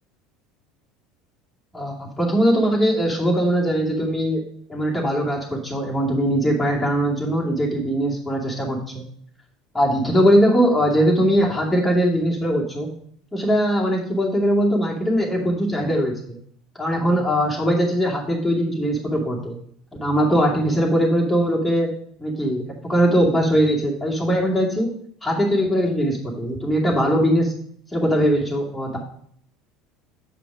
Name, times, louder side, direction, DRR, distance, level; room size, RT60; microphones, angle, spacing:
voice 1, 1.7-4.4 4.7-9.0 9.7-12.9 13.3-16.4 16.7-19.6 20.0-21.9 22.2-24.9 25.2-27.5 27.9-29.0, equal, 10° left, -3 dB, 2.4 m, -20 dB
7.6 x 5.1 x 4.8 m, 0.63 s
hypercardioid pair, 70°, 0 cm